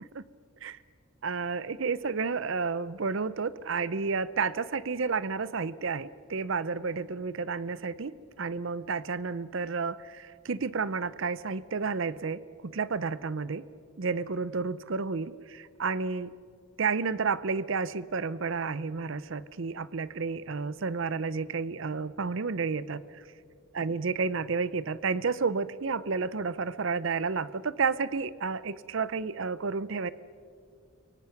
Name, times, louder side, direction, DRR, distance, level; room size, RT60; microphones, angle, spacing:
voice 1, 1.2-13.6 14.0-16.3 16.8-23.2 23.7-30.1, right 4 dB, 55° right, 17 dB, 0.6 m, -31 dB
30.0 x 23.5 x 5.9 m, 2.2 s
head